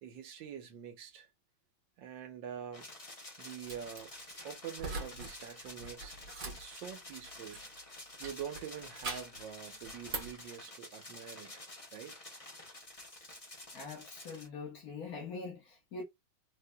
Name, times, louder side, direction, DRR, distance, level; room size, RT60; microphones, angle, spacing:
voice 1, 0.0-1.3 2.0-2.9 3.4-4.1 4.4-6.2 6.4-7.7 8.2-11.6 11.9-12.2 13.8-13.9, right 9 dB, 90° right, 1.6 m, -45 dB
sound 1, 2.7-14.5, left 2 dB, 25° left, 0.9 m, -50 dB
sound 2, 3.6-4.0 4.8-5.3 5.6-7.8 8.2-9.4 9.8-10.4, right 3 dB, 50° right, 1.6 m, -42 dB
voice 2, 13.7-16.0, left 4 dB, 55° left, 1.5 m, -43 dB
4.1 x 2.7 x 2.2 m
omnidirectional pair, 2.0 m